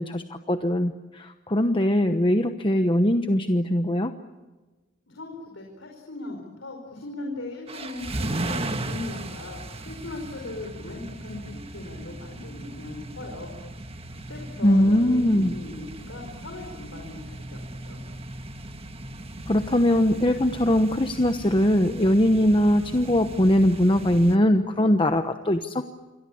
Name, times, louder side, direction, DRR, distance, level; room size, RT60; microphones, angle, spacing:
voice 1, 0.0-4.1 14.6-15.5 19.5-25.8, left 1 dB, 25° left, 7 dB, 1.1 m, -21 dB
voice 2, 5.1-13.5 14.3-18.0, left 2 dB, 80° left, 1 dB, 5.1 m, -39 dB
sound 1, 7.7-24.4, right 1 dB, 30° right, 1.6 m, -37 dB
28.5 x 23.0 x 8.6 m, 1.2 s
head